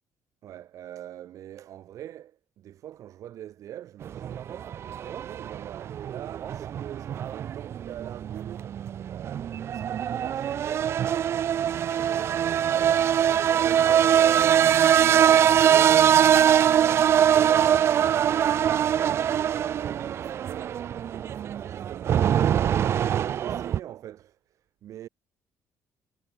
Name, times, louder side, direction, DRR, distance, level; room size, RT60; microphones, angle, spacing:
voice 1, 0.4-4.5 5.1-8.7 9.0-14.8 15.1-20.8 21.6-25.1, right 12 dB, 60° right, 2.6 m, -43 dB
sound 1, 4.0-23.8, right 9 dB, 45° right, 0.6 m, -23 dB
cardioid pair, 165°, 6 cm